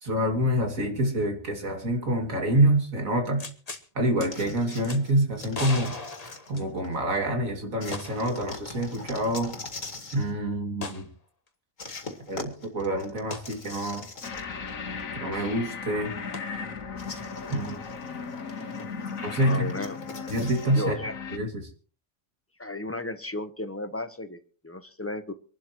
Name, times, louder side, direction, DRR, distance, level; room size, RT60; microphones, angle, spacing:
voice 1, 0.0-3.4 3.9-5.9 6.5-9.5 10.1-11.1 12.3-14.1 15.2-16.1 17.5-17.8 19.2-19.7 20.3-20.9 21.3-21.7, right 1 dB, 85° right, 3 dB, 3.0 m, -26 dB
sound 1, 3.4-3.9 4.2-4.3 4.8-5.0 5.5-7.0 7.9-8.4 8.7-8.8 10.8-11.1 13.3-13.5 16.3-16.4, left 3 dB, 30° left, 1.4 m, -37 dB
sound 2, 4.3-7.0 7.8-10.3 11.8-14.7 15.0-15.1 17.0-20.7, left 3 dB, 70° left, 2.5 m, -42 dB
sound 3, 14.2-21.4, left 5 dB, 85° left, 1.8 m, -37 dB
voice 2, 19.4-20.0 20.7-21.1 22.6-25.3, left 2 dB, 10° left, 10 dB, 0.8 m, -34 dB
25.5 x 12.0 x 3.0 m, 0.39 s
omnidirectional pair, 1.4 m